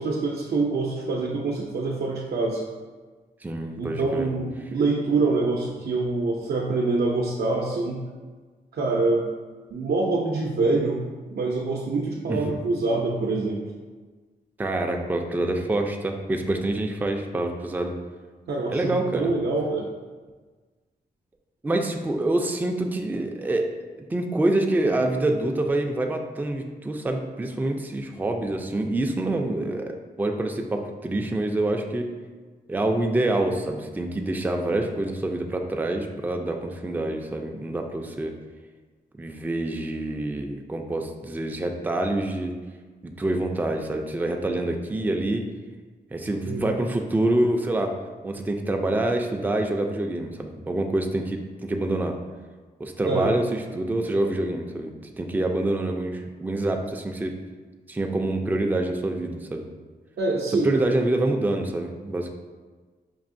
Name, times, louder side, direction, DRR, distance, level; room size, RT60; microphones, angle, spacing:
voice 1, 0.0-2.6 3.8-8.0 8.7-9.2 9.7-11.0 11.3-13.6 18.5-19.9 46.5-46.7 53.1-53.4 60.2-60.8, right 3 dB, 75° right, -2 dB, 0.5 m, -25 dB
voice 2, 3.4-4.3 12.3-12.4 14.6-17.9 18.7-19.3 21.6-23.7 24.1-32.1 32.7-38.3 39.2-42.6 43.0-45.5 46.1-47.9 48.2-52.2 52.8-57.4 57.9-59.7 60.6-62.3, right 2 dB, 10° right, 3 dB, 0.3 m, -26 dB
5.3 x 2.7 x 2.5 m, 1.4 s
wide cardioid pair, 100°, 16 cm